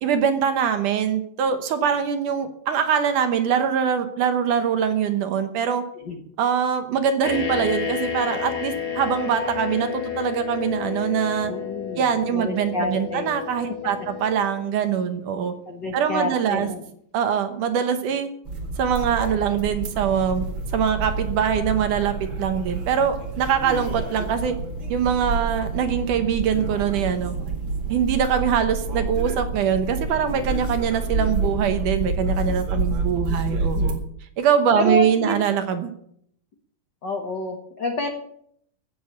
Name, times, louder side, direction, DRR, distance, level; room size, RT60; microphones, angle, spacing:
voice 1, 0.0-5.8 6.4-11.5 12.0-15.5 15.9-16.7 17.1-18.3 18.8-20.4 20.7-24.6 24.9-27.4 27.9-34.0 34.4-35.9, right 7 dB, 65° right, 8 dB, 2.4 m, -23 dB
sound 1, 7.2-14.7, left 8 dB, 35° left, 1.9 m, -31 dB
voice 2, 11.5-13.4 15.7-16.8 24.2-24.3 33.3-33.4 34.7-35.4 37.0-38.1, left 2 dB, 75° left, 4 dB, 0.9 m, -28 dB
sound 2, 18.4-33.9, right 3 dB, 40° right, 2.1 m, -28 dB
15.5 x 7.1 x 8.5 m, 0.69 s
omnidirectional pair, 4.3 m